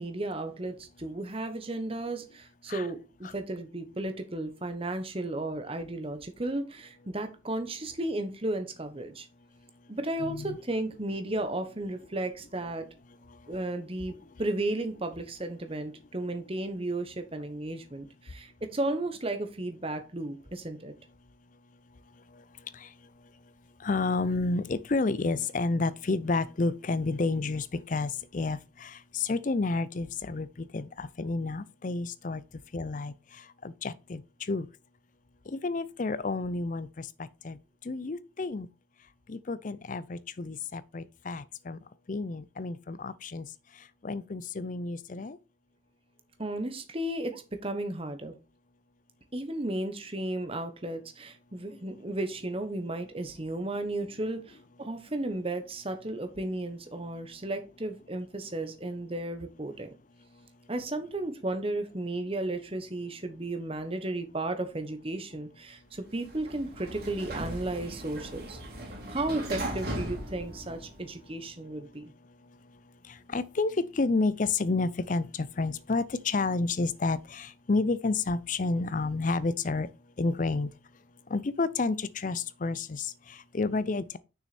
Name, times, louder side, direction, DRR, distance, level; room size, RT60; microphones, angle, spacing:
voice 1, 0.0-9.3 9.9-12.8 13.5-20.9 46.4-48.3 49.3-59.9 60.7-68.6 69.1-72.1, right 2 dB, 30° right, 1.1 m, -34 dB
voice 2, 10.2-10.6 22.7-22.9 23.8-32.4 32.7-33.1 33.6-34.7 35.5-37.6 37.8-38.7 39.3-41.8 42.1-43.5 44.0-45.4 73.1-79.9 80.2-80.7 81.3-84.2, left 3 dB, 40° left, 0.5 m, -30 dB
Sliding door, 66.1-71.3, right 1 dB, 50° right, 2.8 m, -38 dB
6.3 x 6.3 x 4.3 m
head